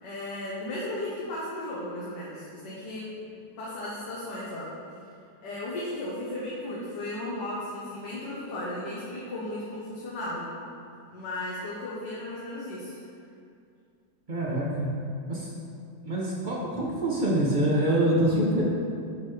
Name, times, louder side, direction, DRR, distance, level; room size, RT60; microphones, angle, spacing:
voice 1, 0.0-3.3 3.6-4.7 5.4-10.5 11.1-13.0, left 1 dB, 75° left, -7 dB, 1.7 m, -35 dB
voice 2, 14.3-14.9 15.3-15.5 16.0-18.6, right 1 dB, 35° right, -5 dB, 0.9 m, -25 dB
11.5 x 4.0 x 3.3 m, 2.4 s
omnidirectional pair, 1.9 m